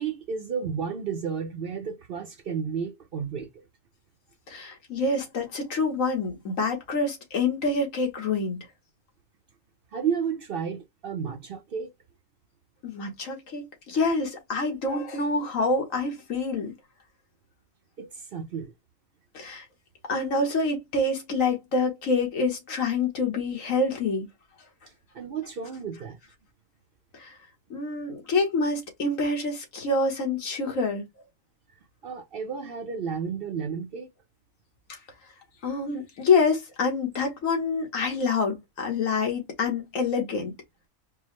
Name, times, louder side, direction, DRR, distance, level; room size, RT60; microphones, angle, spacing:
voice 1, 0.0-3.5 9.9-11.9 18.0-18.7 25.1-26.2 32.0-34.1, right 6 dB, 60° right, 0.6 m, -32 dB
voice 2, 4.5-8.7 12.8-16.7 19.3-19.6 20.1-24.3 27.1-27.4 27.7-31.0 34.9-35.0 35.6-40.5, left 3 dB, 70° left, 1.6 m, -27 dB
4.6 x 2.0 x 3.1 m
omnidirectional pair, 1.4 m